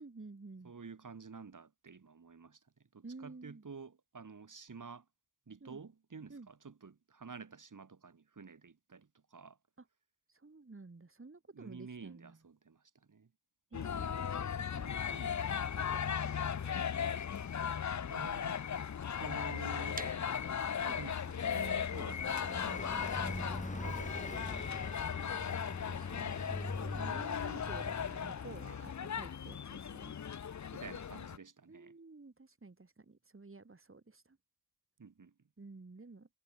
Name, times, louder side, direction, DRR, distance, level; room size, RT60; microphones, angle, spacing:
voice 1, 0.0-0.7 3.0-3.6 5.6-5.8 6.3-6.5 10.3-12.4 13.7-16.9 23.2-23.3 25.3-30.2 31.7-34.4 35.6-36.3, right 3 dB, 40° right, 4.8 m, -52 dB
voice 2, 0.6-2.6 2.9-5.1 5.5-9.6 11.5-13.3 18.1-18.7 19.2-20.1 20.8-25.5 30.7-31.9 35.0-35.3, right 5 dB, 75° right, 7.1 m, -50 dB
sound 1, 13.7-31.4, left 7 dB, 65° left, 0.8 m, -37 dB
Car passing by, 18.9-29.4, left 2 dB, 25° left, 7.4 m, -45 dB
sound 2, 20.0-25.7, right 2 dB, 25° right, 7.1 m, -53 dB
wide cardioid pair, 60°, 31 cm